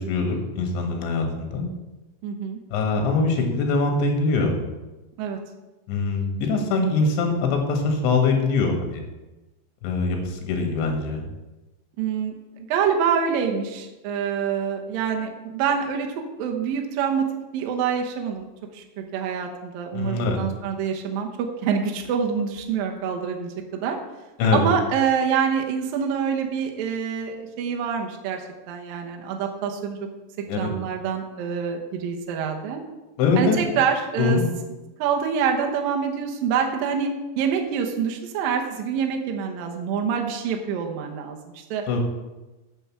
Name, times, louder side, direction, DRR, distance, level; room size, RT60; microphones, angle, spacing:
voice 1, 0.0-1.7 2.7-4.6 5.9-9.0 9.8-11.3 19.9-20.4 24.4-24.6 30.5-30.7 33.2-33.6 34.2-34.5 41.9-42.0, left 3 dB, 70° left, 3 dB, 3.7 m, -23 dB
voice 2, 2.2-2.6 5.2-5.4 12.0-17.3 17.5-18.5 18.7-24.0 24.5-30.0 30.6-32.8 33.4-34.4 35.0-41.9, right 7 dB, 80° right, 2 dB, 2.0 m, -26 dB
9.1 x 6.1 x 7.2 m, 1.1 s
omnidirectional pair, 5.7 m